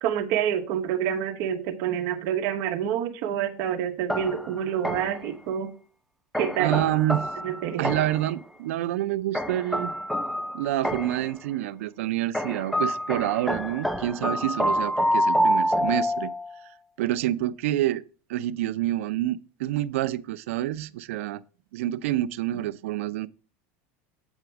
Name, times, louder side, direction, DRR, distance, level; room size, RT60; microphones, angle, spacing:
voice 1, 0.0-5.7 6.4-6.8 7.4-7.9, right 9 dB, 45° right, 1.0 m, -27 dB
sound 1, 4.1-5.3 6.3-8.3 9.3-11.3 12.3-16.6, equal, ahead, 0.4 m, -27 dB
voice 2, 6.6-7.3 7.8-9.9 10.5-16.3 17.0-18.0 18.3-21.4 21.7-23.3, right 14 dB, 85° right, 0.5 m, -27 dB
8.1 x 4.9 x 4.6 m
supercardioid pair, 175°, 7 cm